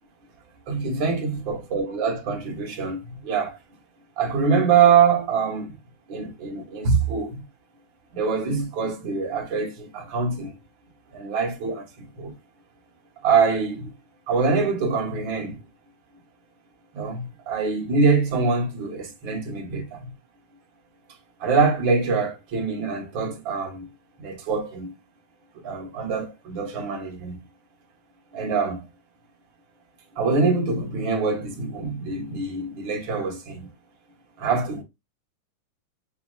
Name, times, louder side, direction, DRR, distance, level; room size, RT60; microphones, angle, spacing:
voice 1, 0.7-3.6 4.2-5.8 6.1-7.4 8.1-10.6 11.1-12.3 13.2-13.9 14.3-15.6 16.9-20.0 21.4-23.9 24.2-24.9 25.6-27.5 28.3-28.9 30.1-33.7 34.4-34.8, right 5 dB, 55° right, 1.5 m, -24 dB
7.2 x 3.0 x 2.3 m
omnidirectional pair, 3.6 m